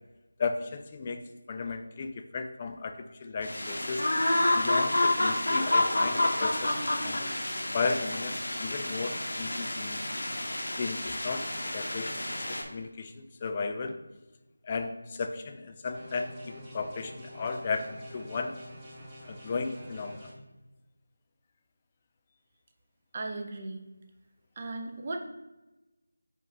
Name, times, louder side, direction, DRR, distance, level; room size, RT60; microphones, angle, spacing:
voice 1, 0.4-1.2 1.5-4.1 4.5-7.3 7.7-10.0 10.8-14.0 14.6-18.5 19.2-20.3, left 4 dB, 25° left, 6 dB, 0.3 m, -35 dB
sound 1, 3.4-12.6, left 1 dB, 70° left, 0.8 m, -29 dB
sound 2, 15.9-20.3, equal, 15° right, 0.9 m, -47 dB
voice 2, 23.1-23.8 24.6-25.3, right 2 dB, 30° right, 3 dB, 0.5 m, -36 dB
4.5 x 2.4 x 4.4 m, 1.1 s
figure-of-eight pair, 165°, 0 cm